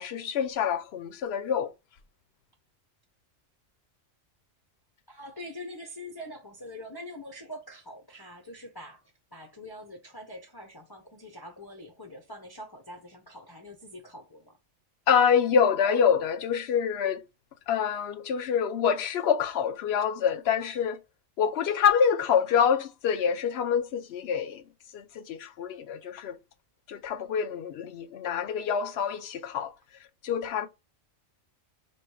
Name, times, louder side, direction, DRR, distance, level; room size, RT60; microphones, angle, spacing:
voice 1, 0.0-1.7 15.1-17.2 17.7-21.0 21.4-24.6 24.9-26.4 26.9-29.7 30.2-30.7, left 7 dB, 65° left, 0.8 m, -26 dB
voice 2, 5.1-9.0 9.3-14.5, left 1 dB, 25° left, 0.5 m, -44 dB
3.1 x 2.9 x 4.5 m
omnidirectional pair, 1.2 m